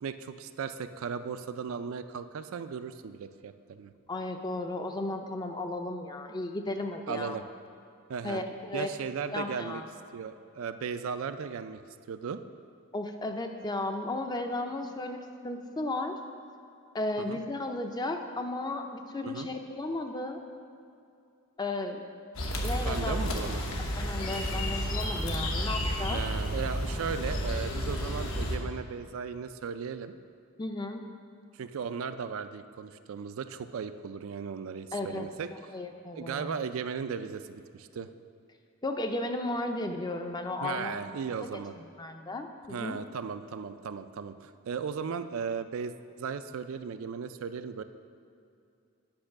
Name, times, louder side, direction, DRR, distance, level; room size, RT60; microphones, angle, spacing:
voice 1, 0.0-3.9 7.1-7.4 8.1-8.4 8.7-9.8 10.1-11.8 12.1-12.4 17.2-17.4 19.2-19.5 22.8-23.8 26.1-30.1 31.6-35.5 36.2-38.1 40.6-41.7 42.7-47.8, right 6 dB, 70° right, 11 dB, 0.3 m, -36 dB
voice 2, 4.1-7.4 8.2-8.9 9.3-9.8 12.9-16.2 16.9-20.4 21.6-22.0 22.6-23.2 24.0-26.2 30.6-31.0 34.9-35.3 35.7-36.5 38.8-41.0 41.5-43.0, left 2 dB, 20° left, 5 dB, 0.4 m, -34 dB
sound 1, 22.3-28.6, equal, 70° left, 1.0 m, -31 dB
8.8 x 5.3 x 5.8 m, 2.5 s
head